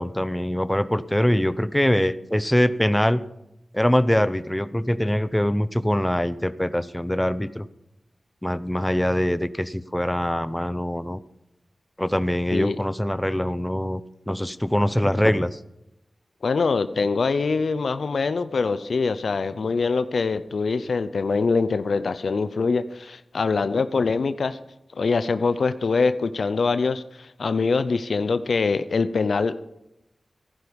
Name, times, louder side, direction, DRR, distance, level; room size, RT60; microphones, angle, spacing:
voice 1, 0.0-3.2 3.7-7.7 8.4-11.2 12.0-15.6, equal, 10° left, 14 dB, 0.8 m, -23 dB
voice 2, 16.4-24.6 24.9-29.6, left 4 dB, 80° left, 13 dB, 0.6 m, -24 dB
15.0 x 11.5 x 5.3 m, 0.86 s
cardioid pair, 45°, 0 cm